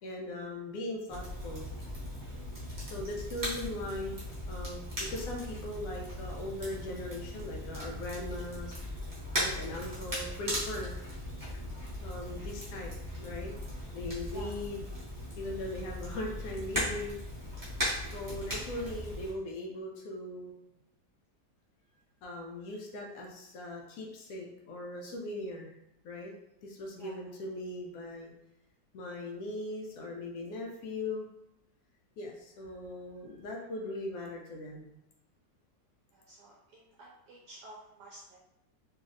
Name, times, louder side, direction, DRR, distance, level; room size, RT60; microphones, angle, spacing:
voice 1, 0.0-1.7 2.9-4.2 4.5-11.0 12.0-12.9 13.2-13.5 13.9-14.8 15.4-17.2 18.0-20.5 22.2-25.7 26.0-26.3 26.6-28.3 28.9-31.3 32.2-34.9, left 1 dB, 90° left, 0 dB, 0.7 m, -39 dB
Crackle, 1.1-19.3, equal, 20° right, 0.6 m, -38 dB
voice 2, 14.3-14.6 27.0-27.3 36.1-38.4, right 1 dB, 70° right, -4 dB, 1.0 m, -51 dB
3.1 x 2.6 x 2.4 m, 0.84 s
omnidirectional pair, 2.0 m